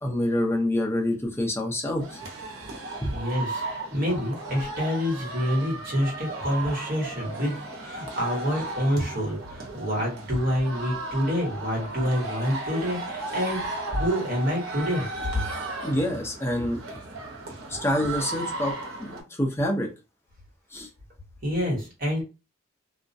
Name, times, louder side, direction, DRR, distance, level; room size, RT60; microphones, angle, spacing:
voice 1, 0.0-2.2 3.0-3.1 15.8-16.8 17.7-18.7 19.0-19.9 20.7-20.9, left 1 dB, 10° left, 0 dB, 0.5 m, -26 dB
sound 1, 2.0-19.2, right 2 dB, 75° right, 0.7 m, -35 dB
voice 2, 3.1-3.6 3.9-15.1 15.3-15.4 21.4-22.2, equal, 45° right, -2 dB, 1.1 m, -27 dB
2.3 x 2.0 x 2.5 m, 0.29 s
head